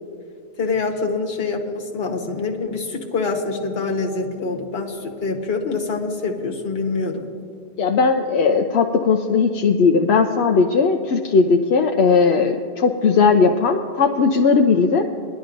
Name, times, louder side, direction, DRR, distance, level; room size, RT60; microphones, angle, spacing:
voice 1, 0.6-7.3, left 4 dB, 65° left, 1 dB, 1.4 m, -25 dB
voice 2, 7.8-15.1, left 5 dB, 85° left, 3 dB, 0.9 m, -17 dB
21.0 x 11.0 x 2.5 m, 2.4 s
omnidirectional pair, 1.1 m